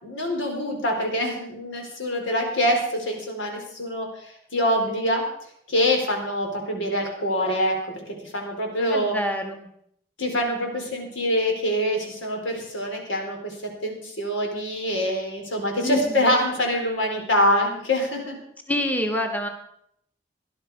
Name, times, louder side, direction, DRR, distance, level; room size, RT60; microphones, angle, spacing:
voice 1, 0.0-5.2 5.7-7.8 8.2-9.1 10.2-18.4, equal, 90° left, 1 dB, 4.2 m, -25 dB
voice 2, 8.9-9.7 15.8-16.3 18.7-19.5, left 1 dB, 10° left, 4 dB, 1.3 m, -27 dB
17.5 x 11.5 x 4.9 m, 0.72 s
head